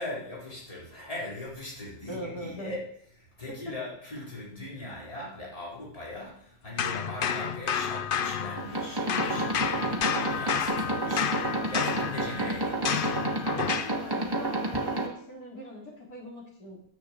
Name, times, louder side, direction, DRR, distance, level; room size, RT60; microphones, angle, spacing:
voice 1, 0.0-2.8 3.4-13.2, left 1 dB, 20° left, -5 dB, 4.1 m, -40 dB
voice 2, 2.1-2.7 3.7-3.8 13.8-16.8, left 1 dB, 70° left, -4 dB, 4.2 m, -41 dB
sound 1, 6.8-8.8 9.1-14.0, left 8 dB, 55° left, 0.6 m, -31 dB
sound 2, 8.6-15.1, right 2 dB, 15° right, 1.6 m, -30 dB
10.5 x 7.6 x 8.4 m, 0.66 s
omnidirectional pair, 1.6 m